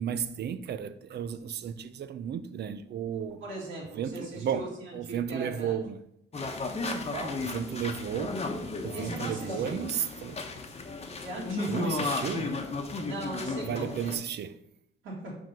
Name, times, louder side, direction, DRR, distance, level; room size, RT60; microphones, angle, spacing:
voice 1, 0.0-3.4 4.0-4.7 4.9-6.0 7.5-8.4 8.8-10.4 11.7-12.5 13.7-14.6, right 8 dB, 55° right, 0.5 m, -33 dB
voice 2, 3.4-5.8 7.1-7.4 8.9-9.8 11.2-12.2 13.0-14.2 15.0-15.4, right 2 dB, 80° right, 2.3 m, -39 dB
sound 1, 6.3-14.1, left 3 dB, 30° left, 1.0 m, -34 dB
5.2 x 3.8 x 5.8 m
cardioid pair, 90°, 20 cm